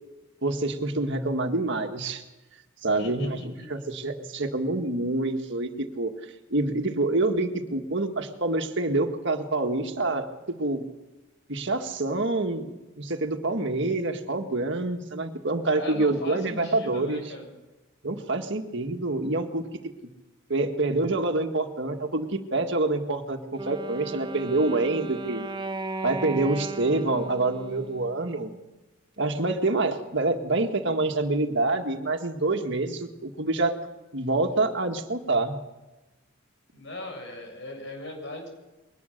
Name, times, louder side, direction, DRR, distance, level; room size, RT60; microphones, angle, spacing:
voice 1, 0.4-2.2 2.8-6.1 6.5-10.9 11.5-17.3 18.0-19.7 20.5-25.4 26.0-28.5 29.2-33.7 34.1-35.6, right 2 dB, 55° right, 5 dB, 1.8 m, -27 dB
voice 2, 3.0-3.7 15.8-17.5 36.7-38.5, left 1 dB, 55° left, 3 dB, 7.1 m, -39 dB
Wind instrument woodwind instrument, 23.5-28.6, right 3 dB, 20° right, 0.9 m, -36 dB
22.5 x 19.0 x 6.6 m, 1.1 s
head